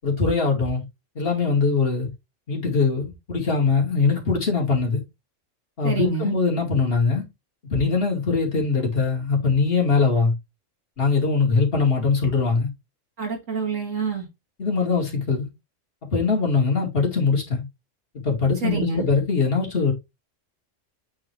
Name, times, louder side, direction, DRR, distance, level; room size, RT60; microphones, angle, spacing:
voice 1, 0.0-0.8 1.2-2.1 2.5-5.0 5.8-7.2 7.7-10.3 11.0-12.7 14.6-15.5 16.1-17.6 18.2-19.9, left 4 dB, 50° left, 2.7 m, -22 dB
voice 2, 5.8-6.4 13.2-14.3 18.6-19.1, right 4 dB, 90° right, 3.0 m, -27 dB
8.6 x 3.9 x 3.2 m
omnidirectional pair, 1.3 m